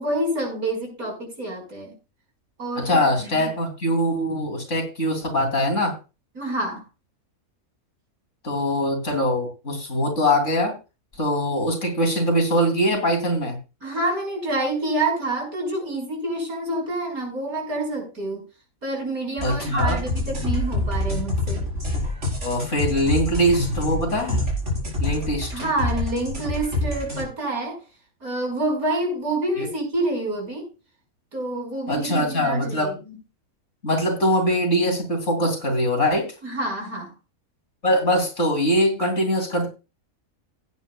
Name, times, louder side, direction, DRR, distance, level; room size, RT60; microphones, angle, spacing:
voice 1, 0.0-1.9 2.6-3.5 6.4-6.8 13.8-18.5 18.8-21.7 25.5-27.8 28.2-30.7 31.3-33.2 36.4-37.1, right 2 dB, 80° right, 1 dB, 5.6 m, -27 dB
voice 2, 2.8-6.0 8.4-10.8 11.2-13.6 19.4-20.0 22.4-24.4 25.0-25.5 29.6-29.7 31.9-32.9 33.8-36.3 37.8-39.7, equal, 55° left, 3 dB, 3.4 m, -22 dB
sound 1, 19.4-27.2, left 2 dB, 50° right, 5.1 m, -26 dB
17.0 x 9.3 x 2.3 m, 0.30 s
omnidirectional pair, 1.5 m